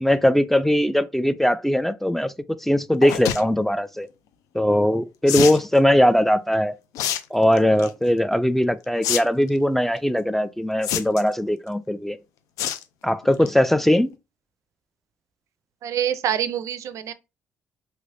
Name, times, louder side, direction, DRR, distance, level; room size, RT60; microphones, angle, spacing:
voice 1, 0.0-2.3 2.6-4.1 4.5-6.7 7.3-12.2 13.0-14.1, left 1 dB, 5° left, 0.3 m, -20 dB
sound 1, 3.0-3.4 5.3-5.6 6.9-7.2 7.6-7.9 9.0-9.2 9.5-9.6 10.8-11.3 12.6-12.8 13.2-13.5 13.8-13.9 14.1-14.2, left 10 dB, 85° left, 0.4 m, -25 dB
voice 2, 15.8-17.1, right 10 dB, 65° right, 0.4 m, -26 dB
3.2 x 3.0 x 2.6 m
cardioid pair, 80°, 6 cm